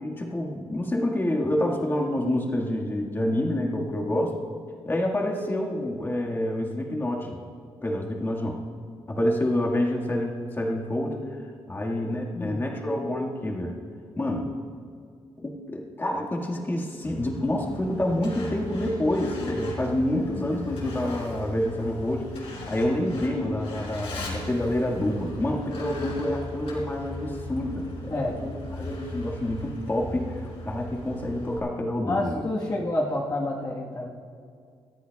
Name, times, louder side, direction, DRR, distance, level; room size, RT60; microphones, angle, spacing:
voice 1, 0.0-4.3 4.8-7.4 7.8-8.6 9.1-11.2 11.7-13.7 14.1-14.5 15.4-32.4, left 1 dB, 20° left, -1 dB, 1.7 m, -28 dB
voice 2, 12.3-12.6 28.1-28.4 32.0-34.1, left 1 dB, 40° left, -4 dB, 1.3 m, -28 dB
Truck, 17.0-31.6, left 1 dB, 80° left, 4.3 m, -38 dB
27.5 x 13.5 x 2.3 m, 2.3 s
wide cardioid pair, 155°, 10 cm